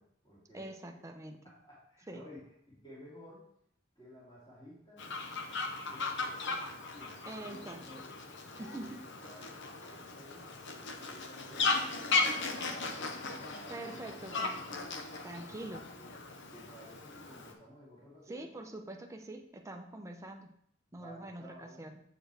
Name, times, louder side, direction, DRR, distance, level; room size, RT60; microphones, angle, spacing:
voice 1, 0.0-0.6 1.4-3.5 4.0-5.0 5.9-8.2 8.5-14.8 15.3-16.2 16.5-18.5 20.9-21.8, equal, 20° left, -8 dB, 2.7 m, -54 dB
voice 2, 0.5-1.4 2.1-2.3 7.3-7.8 8.6-9.0 13.7-14.8 15.2-15.9 18.3-20.5 20.9-22.0, right 2 dB, 15° right, 2 dB, 0.7 m, -44 dB
Fowl, 5.0-17.5, left 4 dB, 60° left, 0.9 m, -37 dB
7.7 x 6.9 x 3.4 m, 0.69 s
head